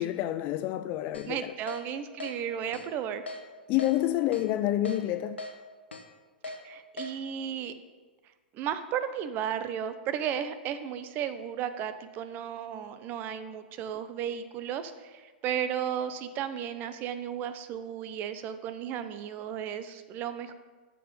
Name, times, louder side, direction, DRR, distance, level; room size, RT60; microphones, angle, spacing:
voice 1, 0.0-1.5 3.7-5.4, left 13 dB, 35° left, 0.3 m, -28 dB
Keyboard (musical), 1.1-1.3 1.7-1.8 2.2-2.3 2.7-2.9 3.3-3.4 3.8-3.9 4.3-4.5 4.9-5.0 5.4-5.5 5.9-6.0 6.4-6.6 7.0-7.1, left 2 dB, 85° left, 1.1 m, -38 dB
voice 2, 1.3-3.2 6.6-7.7 8.5-20.5, right 9 dB, 35° right, 0.7 m, -34 dB
12.5 x 4.6 x 5.3 m
figure-of-eight pair, 105°, 6 cm